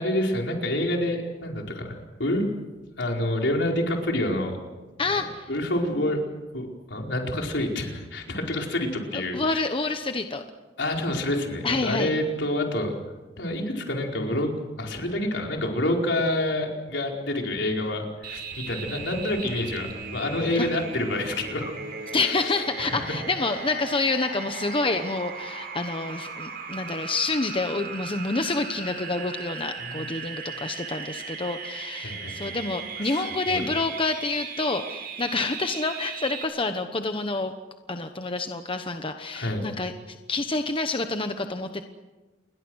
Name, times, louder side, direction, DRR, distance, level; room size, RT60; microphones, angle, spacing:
voice 1, 0.0-2.5 3.0-4.6 5.5-6.2 6.5-9.6 10.8-12.9 13.4-21.7 22.3-22.5 22.8-23.0 29.8-30.1 32.0-32.6 33.0-33.6 39.3-39.7, left 1 dB, 75° left, 1 dB, 4.8 m, -28 dB
voice 2, 5.0-5.5 9.1-10.4 11.6-12.1 20.6-20.7 22.1-37.5 37.9-41.8, left 3 dB, 30° left, 7 dB, 1.1 m, -28 dB
sound 1, 18.2-36.4, right 5 dB, 60° right, 4.6 m, -37 dB
29.0 x 22.0 x 6.4 m, 1.2 s
head